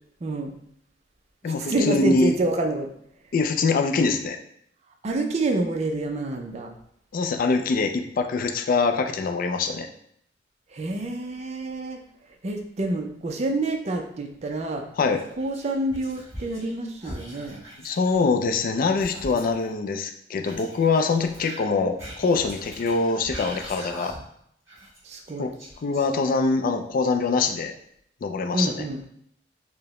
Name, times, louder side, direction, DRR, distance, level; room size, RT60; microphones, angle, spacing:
voice 1, 0.2-0.5 1.5-2.9 5.0-6.7 10.7-12.0 12.4-14.8 15.4-17.6 25.0-25.5 28.5-29.0, right 2 dB, 35° right, 3 dB, 0.4 m, -27 dB
voice 2, 1.4-2.3 3.3-4.4 7.1-9.9 15.0-15.2 17.8-24.1 25.4-25.5 25.8-27.7 28.2-28.9, left 4 dB, 50° left, 6 dB, 0.3 m, -24 dB
Whispering, 15.1-16.7 17.0-19.7 20.4-24.4 24.7-26.5, equal, 15° right, 1.2 m, -42 dB
4.6 x 2.1 x 3.0 m, 0.70 s
head